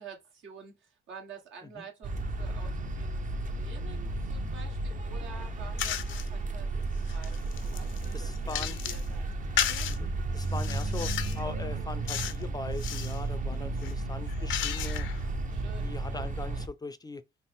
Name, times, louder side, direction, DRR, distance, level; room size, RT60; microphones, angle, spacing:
voice 1, 0.0-3.3 3.6-9.2 13.5-13.8 15.5-15.9, right 6 dB, 75° right, 1.3 m, -49 dB
sound 1, 2.0-16.7, right 2 dB, 40° right, 0.6 m, -33 dB
sound 2, 5.8-6.3 6.8-9.1 9.6-10.0 10.5-11.4 12.1-12.4 12.7-13.2 13.8-15.2, left 11 dB, 75° left, 0.5 m, -34 dB
voice 2, 8.1-8.8 9.9-15.1 15.8-17.2, left 3 dB, 20° left, 0.4 m, -41 dB
4.0 x 2.0 x 3.5 m
cardioid pair, 90°, 20 cm